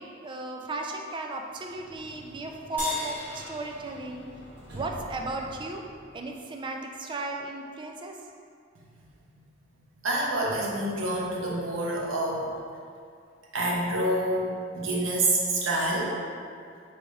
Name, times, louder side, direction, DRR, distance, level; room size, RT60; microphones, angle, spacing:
voice 1, 0.0-4.2 4.7-5.8 6.1-8.2, right 2 dB, 25° right, 2 dB, 0.3 m, -35 dB
Sliding door, 1.5-6.4, right 1 dB, 60° right, 1.0 m, -47 dB
sound 1, 2.8-5.4, left 1 dB, 10° left, 1.1 m, -39 dB
voice 2, 10.0-12.5 13.5-16.2, right 1 dB, 85° right, -3 dB, 0.8 m, -27 dB
3.3 x 2.7 x 4.6 m, 2.4 s
head